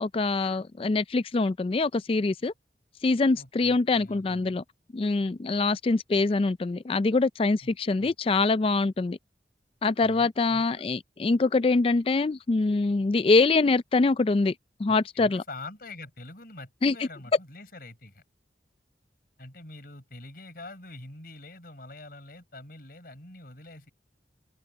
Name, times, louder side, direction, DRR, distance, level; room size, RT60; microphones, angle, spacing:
voice 1, 0.0-2.5 3.0-4.6 4.9-9.2 9.8-14.5 14.8-15.4 16.8-17.1, left 3 dB, 30° left, 0.4 m, -24 dB
voice 2, 3.3-4.6 7.6-7.7 8.0-8.4 10.0-10.8 14.9-18.2 19.4-23.9, left 2 dB, 55° left, 4.6 m, -45 dB
head